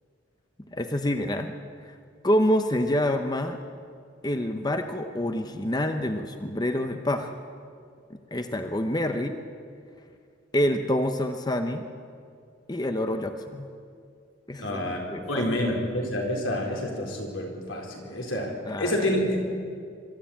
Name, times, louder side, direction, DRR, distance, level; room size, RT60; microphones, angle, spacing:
voice 1, 0.7-1.5 1.9-2.0 2.2-3.6 4.2-7.3 8.1-9.4 10.5-11.8 12.7-13.7 14.5-15.4 18.7-19.1, left 1 dB, 20° left, 7 dB, 0.8 m, -27 dB
voice 2, 14.6-15.0 15.3-19.4, left 1 dB, 90° left, 0 dB, 4.1 m, -28 dB
23.5 x 13.0 x 8.9 m, 2.3 s
head